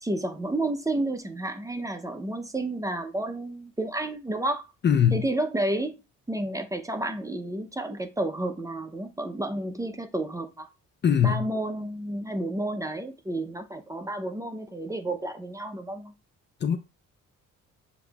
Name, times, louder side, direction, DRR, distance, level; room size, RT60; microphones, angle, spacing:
voice 1, 0.0-4.6 5.1-6.0 6.3-10.7 11.2-16.1, right 1 dB, 10° right, 0.6 m, -31 dB
voice 2, 4.8-5.2 11.0-11.4 16.6-16.8, left 8 dB, 35° left, 0.5 m, -21 dB
6.8 x 2.8 x 2.3 m
cardioid pair, 90°, 30 cm